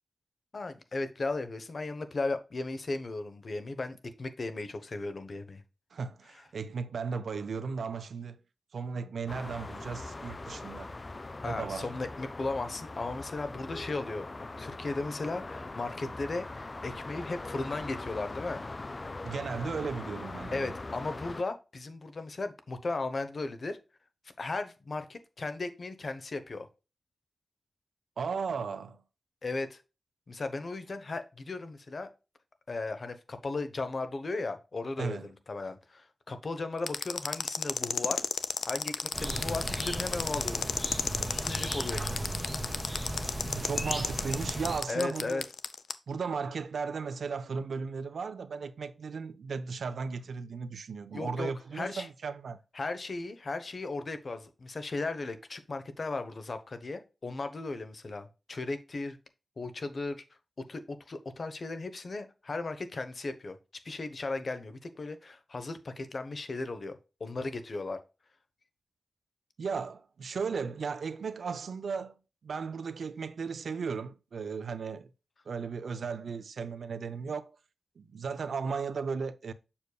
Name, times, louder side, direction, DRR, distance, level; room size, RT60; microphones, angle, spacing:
voice 1, 0.5-5.6 11.4-18.6 20.5-23.8 24.4-26.7 29.4-29.8 30.3-32.1 32.7-35.2 35.5-38.3 38.6-40.7 41.3-42.2 44.9-45.4 51.1-52.1 52.7-59.2 59.6-60.2 60.6-63.6 63.8-66.9 67.2-68.0, left 3 dB, 45° left, 1.0 m, -36 dB
voice 2, 5.9-8.4 8.7-10.9 11.4-11.9 19.2-20.8 28.2-29.0 35.0-35.3 43.5-45.4 46.1-52.6 69.6-72.1 72.4-75.1 75.5-77.6 78.0-79.5, right 5 dB, 80° right, 0.6 m, -36 dB
sound 1, 9.3-21.4, left 2 dB, 30° left, 0.4 m, -41 dB
sound 2, 36.9-45.9, left 5 dB, 80° left, 0.6 m, -32 dB
sound 3, 39.1-44.8, right 1 dB, ahead, 2.4 m, -36 dB
7.1 x 6.6 x 2.3 m
wide cardioid pair, 125°, 0 cm